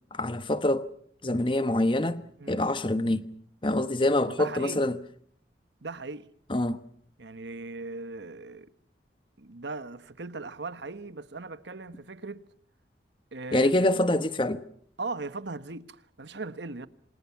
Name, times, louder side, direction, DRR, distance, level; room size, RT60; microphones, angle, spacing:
voice 1, 0.1-0.9 1.2-3.3 3.6-5.0 6.5-6.8 13.5-14.6, left 1 dB, 25° left, 1.1 m, -25 dB
voice 2, 4.2-4.8 5.8-6.3 7.2-8.7 9.4-12.4 13.3-14.0 15.0-16.9, right 3 dB, 75° right, 1.2 m, -38 dB
28.0 x 26.0 x 5.9 m
head